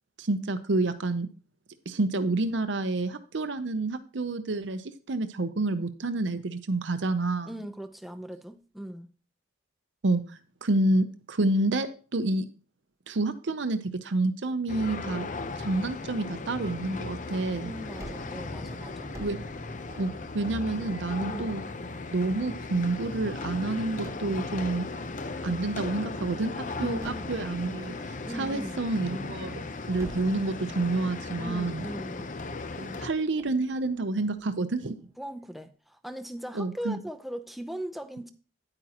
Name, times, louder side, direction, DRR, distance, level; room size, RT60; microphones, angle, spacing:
voice 1, 0.2-1.3 1.9-7.5 10.0-10.2 10.6-12.5 13.1-15.3 15.6-17.7 19.2-19.4 20.0-21.6 22.1-24.9 25.4-26.5 26.8-29.6 29.9-31.9 32.8-34.9 36.5-37.0, right 2 dB, 80° right, 0.7 m, -28 dB
voice 2, 7.4-9.1 17.6-19.1 21.2-21.5 26.8-27.4 28.2-28.8 31.4-32.3 35.2-38.3, right 1 dB, ahead, 0.6 m, -39 dB
sound 1, 14.7-33.1, left 3 dB, 45° left, 0.6 m, -37 dB
Gunshot gunfire, 18.0-23.1 24.0-26.4 27.0-29.5 30.0-35.2, right 1 dB, 15° right, 1.2 m, -51 dB
9.8 x 8.8 x 2.9 m
head